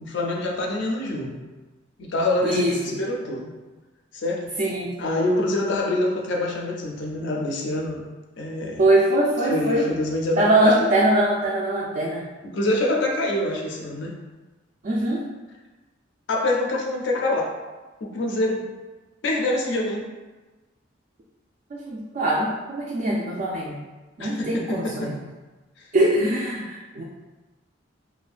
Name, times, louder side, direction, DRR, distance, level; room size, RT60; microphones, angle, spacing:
voice 1, 0.0-1.4 2.0-3.5 4.1-4.5 5.0-8.0 8.4-8.8 9.5-10.8 12.4-14.1 16.3-17.5 18.0-18.6 19.2-20.0 24.2-25.1 25.8-25.9, left 1 dB, 65° left, 0 dB, 0.4 m, -25 dB
voice 2, 2.4-3.0 4.6-4.9 8.8-9.8 10.4-12.2 14.8-15.2 21.7-23.8 24.2-25.1 25.9-27.0, right 1 dB, 45° right, -5 dB, 0.3 m, -22 dB
2.5 x 2.1 x 2.4 m, 1.2 s
head